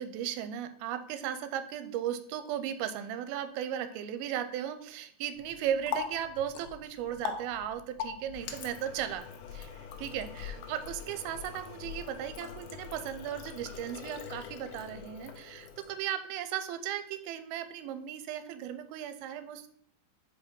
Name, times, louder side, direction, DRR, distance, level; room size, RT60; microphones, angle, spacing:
voice 1, 0.0-9.3 9.5-19.7, right 10 dB, 85° right, 10 dB, 2.5 m, -36 dB
Water tap faucet, 5.3-16.1, left 8 dB, 75° left, 1.9 m, -42 dB
5.2 x 5.1 x 5.2 m, 0.64 s
omnidirectional pair, 4.3 m